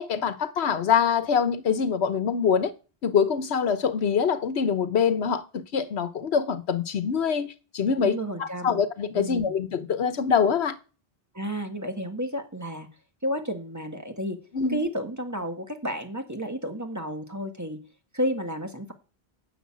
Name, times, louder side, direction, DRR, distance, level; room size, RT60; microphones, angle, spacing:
voice 1, 0.0-2.7 3.0-10.8 14.5-14.8, left 6 dB, 85° left, 1.2 m, -24 dB
voice 2, 8.0-8.8 9.1-9.5 11.3-12.9 13.2-14.4 14.7-17.8 18.1-18.9, equal, 15° right, 1.7 m, -31 dB
10.5 x 6.9 x 8.5 m
omnidirectional pair, 1.1 m